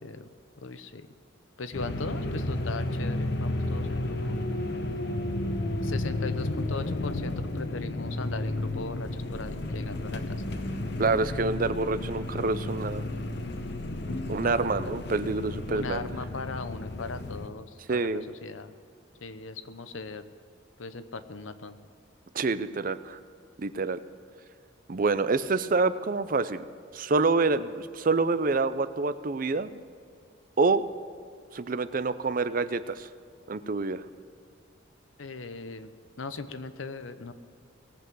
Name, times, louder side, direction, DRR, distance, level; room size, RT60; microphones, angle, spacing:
voice 1, 0.6-1.1 1.6-4.4 5.8-10.4 14.4-14.9 15.7-18.7 19.2-20.2 20.8-21.8 35.2-35.9 36.2-37.3, left 3 dB, 85° left, 11 dB, 0.8 m, -39 dB
sound 1, 1.7-17.5, left 1 dB, 60° left, 1.0 m, -32 dB
voice 2, 11.0-13.1 14.3-16.1 17.9-18.2 22.3-23.2 23.6-24.0 24.9-26.6 26.9-29.7 30.6-30.8 31.5-33.1 33.5-34.0, right 3 dB, 45° right, 13 dB, 0.5 m, -27 dB
18.5 x 8.0 x 6.2 m, 2.4 s
head